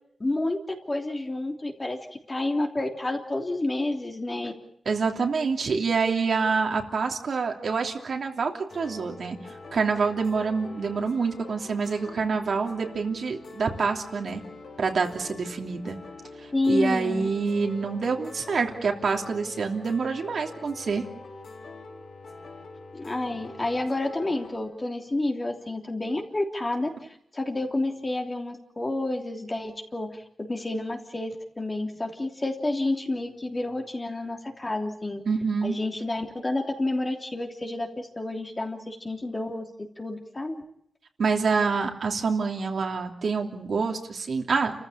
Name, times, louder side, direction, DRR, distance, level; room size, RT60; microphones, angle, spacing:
voice 1, 0.2-2.0 2.3-4.5 16.5-17.3 22.9-35.2 35.6-39.7 40.0-40.6, left 2 dB, 25° left, 2 dB, 3.2 m, -29 dB
voice 2, 4.8-14.4 14.8-16.0 16.4-21.0 35.3-35.8 41.2-44.8, right 5 dB, 70° right, 2 dB, 3.0 m, -27 dB
sound 1, 8.7-24.6, left 3 dB, 80° left, 4.7 m, -44 dB
29.5 x 14.5 x 8.7 m, 0.73 s
wide cardioid pair, 100°, 0 cm